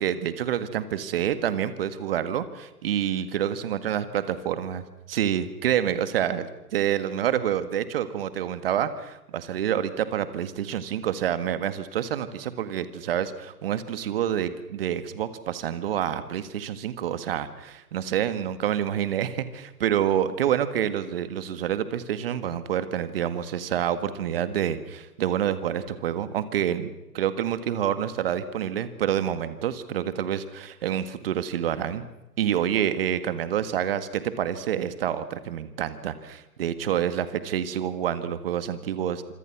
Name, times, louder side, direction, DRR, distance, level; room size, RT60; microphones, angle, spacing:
voice 1, 0.0-4.8 5.1-32.0 32.4-39.3, right 10 dB, 35° right, 12 dB, 1.9 m, -27 dB
26.5 x 25.5 x 6.1 m, 0.95 s
hypercardioid pair, 145°, 48 cm